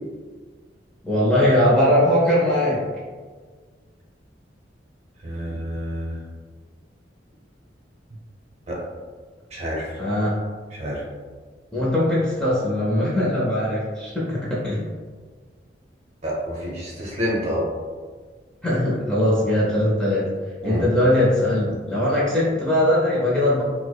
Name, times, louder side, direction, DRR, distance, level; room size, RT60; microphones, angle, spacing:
voice 1, 1.0-2.8 10.0-10.4 11.7-14.8 18.6-20.3 20.6-23.6, left 1 dB, 5° left, -7 dB, 0.5 m, -20 dB
voice 2, 5.2-6.1 8.7-8.8 9.5-9.9 10.7-11.0 16.2-17.6 20.6-20.8, equal, 35° right, -4 dB, 0.8 m, -28 dB
4.5 x 2.1 x 2.3 m, 1.5 s
head